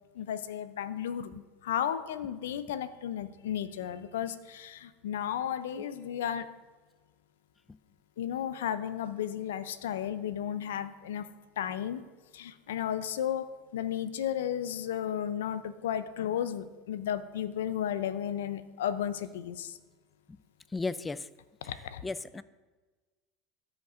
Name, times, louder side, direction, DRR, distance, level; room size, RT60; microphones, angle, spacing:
voice 1, 0.2-6.5 8.2-11.3 11.6-12.0 12.3-19.8 21.6-22.0, left 10 dB, 90° left, 13 dB, 0.4 m, -34 dB
voice 2, 20.7-21.3 22.0-22.4, left 3 dB, 15° left, 16 dB, 0.3 m, -34 dB
14.0 x 5.2 x 2.5 m, 1.3 s
supercardioid pair, 100°, 0 cm